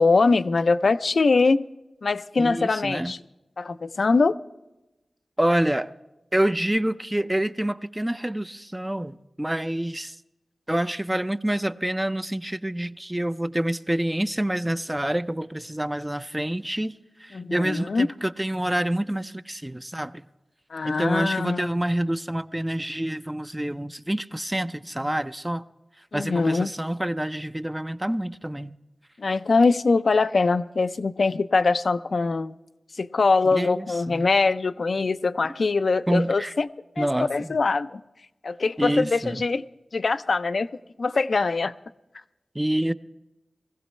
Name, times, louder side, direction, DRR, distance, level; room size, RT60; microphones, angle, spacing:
voice 1, 0.0-1.7 2.0-3.2 3.6-4.4 17.3-18.1 20.7-21.7 26.1-26.7 29.2-32.5 33.0-36.7 37.0-38.0 38.4-39.6 39.9-40.7 41.0-41.7, left 4 dB, 70° left, 0.4 m, -22 dB
voice 2, 2.4-3.1 5.4-5.9 6.3-10.2 10.7-17.0 17.2-20.1 20.8-25.6 26.1-28.7 33.5-34.3 36.1-36.5 37.0-37.6 38.8-39.4 42.5-42.9, right 1 dB, 15° right, 0.4 m, -27 dB
20.5 x 15.5 x 3.2 m
cardioid pair, 50°, 0 cm